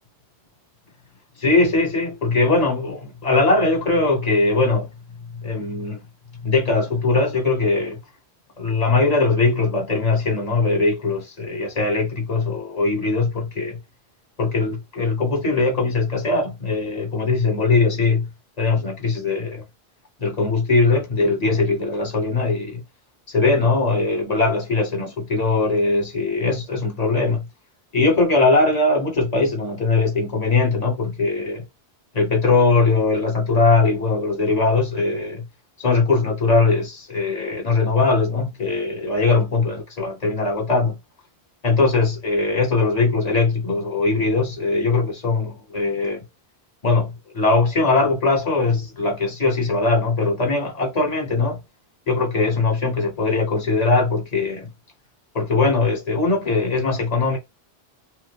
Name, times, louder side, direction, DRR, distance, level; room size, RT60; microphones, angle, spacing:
voice 1, 1.4-4.9 5.4-6.0 6.4-8.0 8.6-13.8 14.4-18.3 18.6-19.6 20.2-22.8 23.3-27.4 27.9-31.6 32.1-35.4 35.8-41.0 41.6-46.2 46.8-51.6 52.1-54.7 55.3-57.4, left 3 dB, 40° left, 1.1 m, -20 dB
3.1 x 2.1 x 3.4 m
omnidirectional pair, 1.1 m